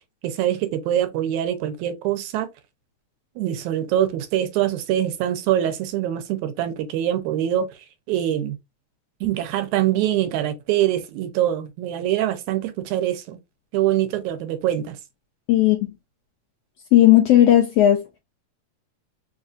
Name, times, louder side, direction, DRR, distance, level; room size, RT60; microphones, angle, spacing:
voice 1, 0.2-2.5 3.4-7.7 8.1-8.6 9.2-13.4 13.7-15.0, right 12 dB, 90° right, 2.0 m, -24 dB
voice 2, 15.5-15.9 16.9-18.0, left 13 dB, 85° left, 1.4 m, -15 dB
4.7 x 2.4 x 2.6 m
omnidirectional pair, 3.4 m